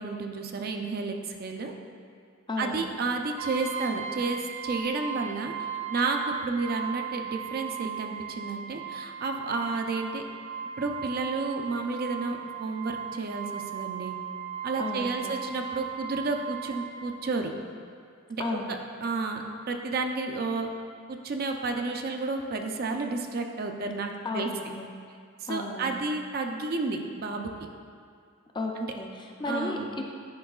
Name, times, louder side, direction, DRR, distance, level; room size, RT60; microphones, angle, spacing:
voice 1, 0.0-1.7 2.6-5.5 5.9-10.2 10.8-14.2 14.6-17.5 18.3-20.7 21.1-24.5 25.4-27.5 28.8-28.9 29.5-30.0, right 3 dB, 45° right, 4 dB, 0.4 m, -31 dB
voice 2, 2.5-2.8 14.8-15.3 18.4-18.7 24.2-24.9 25.5-26.0 28.5-29.8, left 2 dB, 20° left, 1 dB, 0.4 m, -33 dB
Brass instrument, 3.4-17.0, right 9 dB, 75° right, 0.9 m, -37 dB
10.5 x 4.6 x 2.3 m, 2.3 s
head